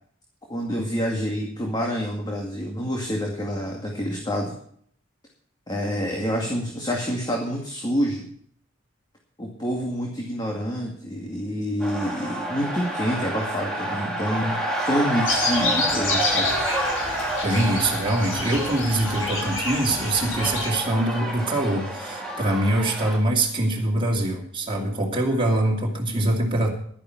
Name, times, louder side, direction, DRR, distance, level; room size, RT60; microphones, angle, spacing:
voice 1, 0.5-4.5 5.7-8.2 9.4-16.5, equal, 20° left, 0 dB, 2.2 m, -27 dB
sound 1, 11.8-23.2, right 1 dB, 5° left, 4.1 m, -29 dB
sound 2, 15.2-20.7, left 3 dB, 90° left, 5.9 m, -28 dB
voice 2, 17.4-26.7, right 1 dB, 25° right, -2 dB, 2.7 m, -24 dB
12.0 x 10.5 x 5.9 m, 0.62 s
head